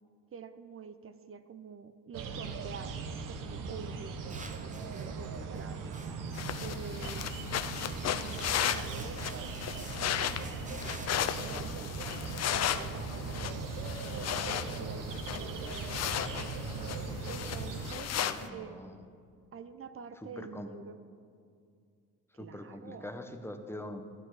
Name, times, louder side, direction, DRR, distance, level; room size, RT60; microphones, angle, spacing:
voice 1, 0.3-5.8 6.6-7.3 7.9-9.5 11.4-11.9 12.5-15.9 17.2-18.8 19.5-21.0 22.4-23.1, right 6 dB, 40° right, 12 dB, 0.7 m, -47 dB
sound 1, 2.1-17.9, right 4 dB, 70° right, 1.1 m, -39 dB
sound 2, 4.3-6.6 7.2-7.3 7.6-11.1, right 3 dB, 20° right, 1.0 m, -50 dB
sound 3, 6.3-18.5, left 10 dB, 50° left, 0.6 m, -35 dB
voice 2, 18.2-19.0 20.4-20.7 22.4-24.0, left 1 dB, 5° left, 6 dB, 1.0 m, -43 dB
13.0 x 8.8 x 4.9 m, 2.3 s
cardioid pair, 85°, 33 cm